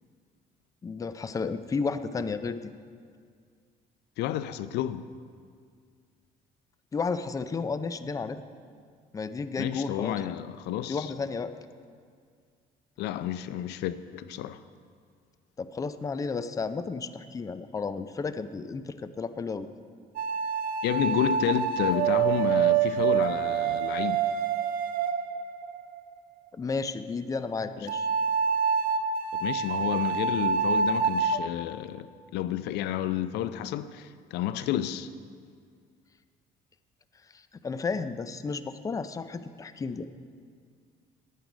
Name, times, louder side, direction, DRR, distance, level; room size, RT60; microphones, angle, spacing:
voice 1, 0.8-2.6 6.9-8.4 9.1-10.2 10.9-11.5 15.6-19.7 26.5-28.1 37.3-40.1, left 4 dB, 20° left, 0.4 m, -32 dB
voice 2, 4.2-5.1 9.6-11.1 13.0-14.6 20.8-24.2 29.4-35.1, left 11 dB, 80° left, 0.5 m, -30 dB
sound 1, 20.2-26.0 27.9-31.4, right 7 dB, 55° right, 0.5 m, -26 dB
11.0 x 9.1 x 5.1 m
cardioid pair, 110°, 17 cm